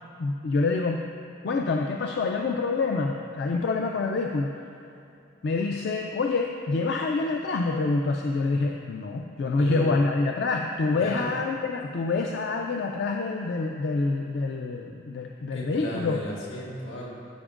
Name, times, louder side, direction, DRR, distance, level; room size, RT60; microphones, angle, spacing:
voice 1, 0.2-1.1 1.4-4.5 5.4-16.2, left 3 dB, 55° left, 2 dB, 0.3 m, -26 dB
voice 2, 10.9-11.3 15.5-17.1, equal, 75° left, -4 dB, 1.7 m, -35 dB
13.5 x 5.2 x 2.5 m, 2.8 s
head